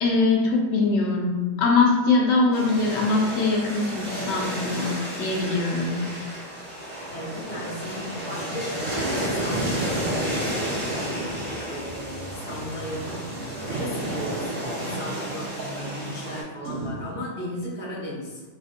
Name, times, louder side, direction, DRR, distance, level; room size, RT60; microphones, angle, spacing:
voice 1, 0.0-6.0, left 3 dB, 70° left, -1 dB, 0.8 m, -22 dB
sound 1, 2.5-16.4, right 1 dB, 45° right, 1.0 m, -31 dB
voice 2, 7.1-13.2 13.6-18.4, equal, 15° left, -5 dB, 0.4 m, -36 dB
sound 2, 11.3-17.1, right 2 dB, 90° right, 1.0 m, -38 dB
3.2 x 2.5 x 2.5 m, 1.2 s
omnidirectional pair, 1.2 m